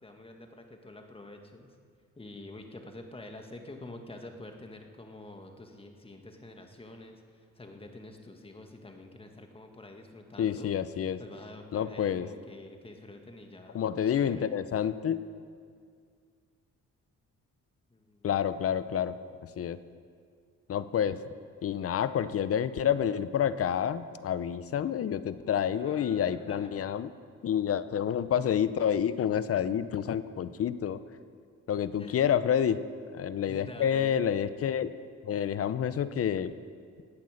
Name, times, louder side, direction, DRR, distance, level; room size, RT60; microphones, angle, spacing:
voice 1, 0.0-1.8 2.2-10.7 11.0-14.5 17.9-18.3 25.7-26.9 32.0-32.2 33.5-34.2, left 2 dB, 20° left, 4 dB, 1.7 m, -47 dB
voice 2, 10.4-11.2 11.7-12.3 13.7-15.2 18.2-19.2 19.4-19.8 20.7-21.2 21.6-27.1 27.4-31.0 31.7-32.8 33.1-34.9 35.2-36.5, left 9 dB, 50° left, 14 dB, 0.7 m, -28 dB
18.5 x 8.5 x 6.5 m, 2.1 s
cardioid pair, 90°, 30 cm